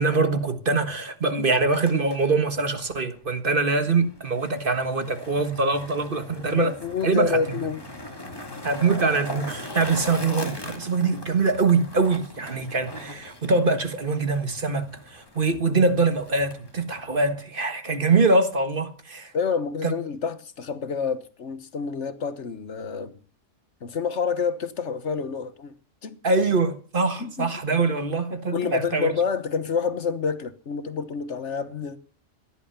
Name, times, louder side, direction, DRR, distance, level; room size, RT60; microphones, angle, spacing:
voice 1, 0.0-6.7 7.0-7.4 8.6-19.3 19.8-19.9 26.2-29.1, right 3 dB, 45° right, 1.6 m, -23 dB
Skateboard, 1.7-17.2, left 1 dB, 20° left, 2.1 m, -40 dB
voice 2, 6.6-7.8 19.3-23.2 23.8-25.7 26.0-26.2 27.2-27.5 28.5-32.0, left 5 dB, 65° left, 1.4 m, -28 dB
16.0 x 11.0 x 5.7 m
omnidirectional pair, 1.3 m